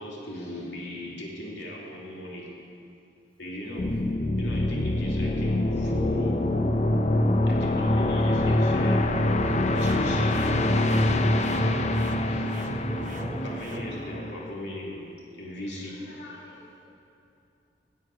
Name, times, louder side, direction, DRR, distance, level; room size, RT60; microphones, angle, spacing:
voice 1, 0.0-2.5 3.4-4.0 4.4-6.9 7.5-10.9 11.4-16.8, left 1 dB, 75° left, -3 dB, 2.9 m, -39 dB
sound 1, 3.8-14.5, left 1 dB, 40° left, 0.7 m, -25 dB
sound 2, 9.4-13.8, right 1 dB, 45° right, 0.9 m, -38 dB
voice 2, 12.9-14.0, equal, 5° left, -2 dB, 2.2 m, -40 dB
13.0 x 7.7 x 9.2 m, 2.6 s
head